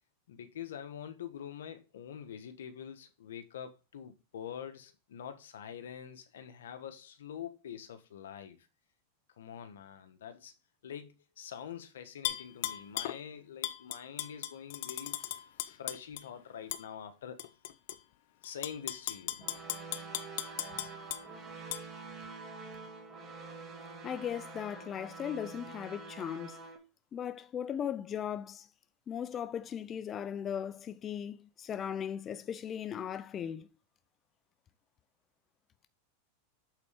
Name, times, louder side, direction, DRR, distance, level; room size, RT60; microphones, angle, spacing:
voice 1, 0.3-8.6 9.4-10.5 10.8-17.4 18.4-19.6, left 8 dB, 90° left, 1.3 m, -45 dB
Tap / Glass, 12.2-13.2 13.6-16.2 16.7-16.8 17.4-18.0 18.4-21.2 21.7-21.8, left 13 dB, 65° left, 0.7 m, -37 dB
sound 1, 19.4-26.8, right 4 dB, 30° right, 2.6 m, -46 dB
voice 2, 24.0-26.6 27.1-28.7 29.1-33.7, left 9 dB, 25° left, 0.5 m, -38 dB
8.1 x 4.2 x 5.0 m
supercardioid pair, 130°, 0 cm